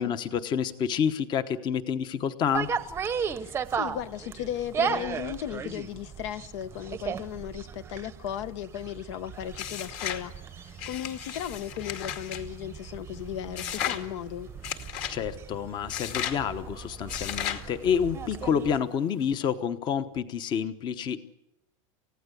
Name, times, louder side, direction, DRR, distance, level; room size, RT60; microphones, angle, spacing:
voice 1, 0.0-2.7 15.1-21.2, left 7 dB, 25° left, 1.0 m, -28 dB
sound 1, 2.5-18.8, right 7 dB, 15° right, 0.9 m, -36 dB
voice 2, 3.4-10.3 10.6-14.5, left 11 dB, 65° left, 1.1 m, -36 dB
sound 2, 9.5-10.3 10.8-12.4 13.6-14.0 14.6-15.2 15.9-16.4 17.1-17.7, left 9 dB, 45° left, 2.3 m, -34 dB
29.5 x 16.0 x 8.3 m
supercardioid pair, 160°, 16 cm